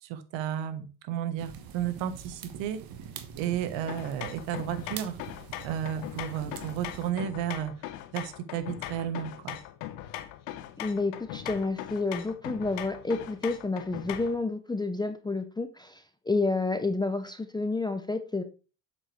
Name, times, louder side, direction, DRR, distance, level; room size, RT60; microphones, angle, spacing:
voice 1, 0.0-2.8 3.4-5.2 5.6-7.7 8.1-9.6, right 10 dB, 60° right, 11 dB, 1.4 m, -33 dB
sound 1, 1.4-7.1, right 8 dB, 45° right, 1.4 m, -44 dB
sound 2, 3.9-14.4, left 13 dB, 65° left, 1.1 m, -40 dB
voice 2, 10.8-18.4, left 3 dB, 10° left, 9 dB, 0.6 m, -30 dB
7.8 x 6.2 x 3.2 m, 0.33 s
supercardioid pair, 95°, 49 cm